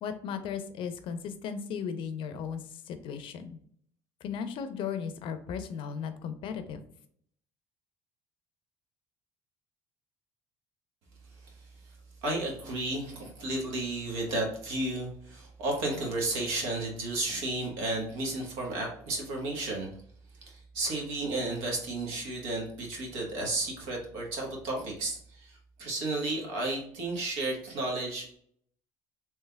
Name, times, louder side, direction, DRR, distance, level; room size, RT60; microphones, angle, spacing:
voice 1, 0.0-3.6 4.2-6.8, left 7 dB, 60° left, 10 dB, 0.5 m, -36 dB
voice 2, 12.2-19.9 20.4-28.4, right 2 dB, 75° right, 0 dB, 1.1 m, -33 dB
3.3 x 3.1 x 2.2 m, 0.64 s
supercardioid pair, 75°, 10 cm